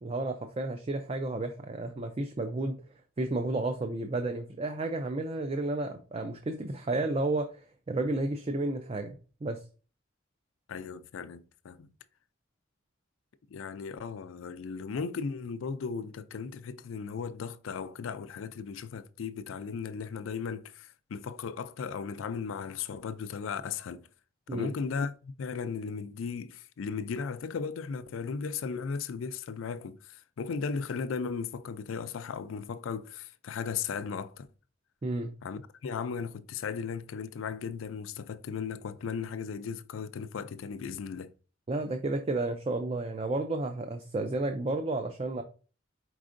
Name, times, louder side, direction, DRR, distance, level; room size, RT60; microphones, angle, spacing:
voice 1, 0.0-2.8 3.2-7.5 7.9-9.2 9.4-9.6 24.5-24.7 35.0-35.3 41.7-45.4, right 2 dB, 30° right, 0.4 m, -32 dB
voice 2, 10.7-11.9 13.5-24.1 24.5-34.5 35.4-41.3, left 5 dB, 90° left, 0.4 m, -36 dB
4.7 x 4.2 x 2.5 m
head